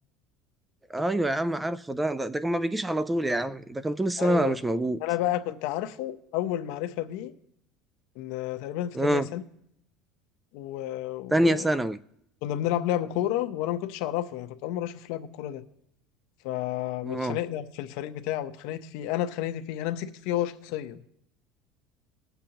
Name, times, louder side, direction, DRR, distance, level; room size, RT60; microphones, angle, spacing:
voice 1, 0.9-5.0 8.9-9.3 11.3-12.0 17.0-17.4, right 1 dB, 10° right, 0.3 m, -26 dB
voice 2, 4.2-4.5 5.0-7.3 8.2-9.4 10.5-11.7 12.4-15.6 16.4-21.0, left 12 dB, 70° left, 0.8 m, -31 dB
20.5 x 6.9 x 2.9 m
cardioid pair, 150°, 0 cm